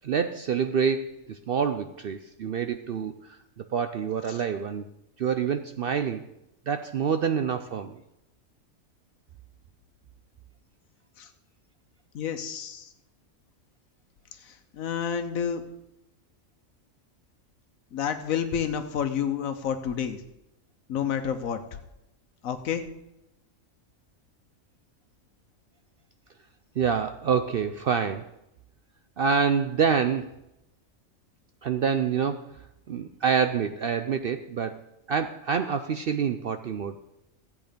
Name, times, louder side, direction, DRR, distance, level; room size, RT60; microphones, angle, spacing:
voice 1, 0.0-4.8 5.2-6.3 6.7-8.0 26.8-28.3 29.2-30.3 31.6-32.5 32.9-34.8 35.1-37.1, right 6 dB, 60° right, 9 dB, 0.6 m, -27 dB
voice 2, 12.1-12.9 14.3-15.6 17.9-20.2 20.9-21.6 22.4-22.9, left 8 dB, 90° left, 8 dB, 1.3 m, -30 dB
13.5 x 8.5 x 5.2 m, 0.88 s
omnidirectional pair, 1.4 m